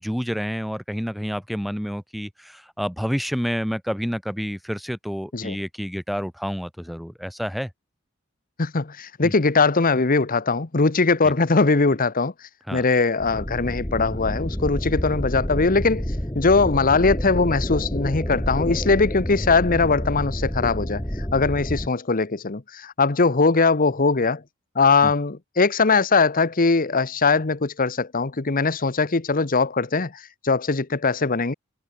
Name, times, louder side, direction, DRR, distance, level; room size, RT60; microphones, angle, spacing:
voice 1, 0.0-7.7 9.2-9.3 11.2-11.3 12.7-12.8 25.0-25.1, equal, ahead, 0.6 m, -29 dB
voice 2, 8.6-12.3 12.7-16.1 16.3-21.0 21.3-24.4 24.7-31.5, left 4 dB, 40° left, 1.0 m, -21 dB
sound 1, 13.2-21.9, equal, 15° left, 2.3 m, -29 dB
head